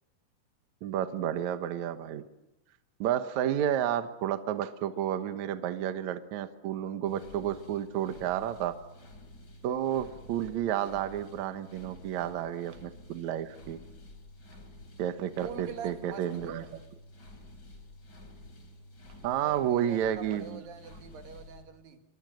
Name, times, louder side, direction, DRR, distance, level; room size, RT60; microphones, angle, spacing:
voice 1, 0.8-2.2 3.0-8.7 9.6-13.8 15.0-16.8 19.2-20.6, right 10 dB, 75° right, 9 dB, 1.7 m, -31 dB
sound 1, 7.1-21.6, left 1 dB, 25° left, 3.5 m, -51 dB
voice 2, 15.4-16.8 19.4-22.0, right 7 dB, 60° right, 6 dB, 3.2 m, -44 dB
27.5 x 22.5 x 6.3 m, 0.91 s
omnidirectional pair, 4.9 m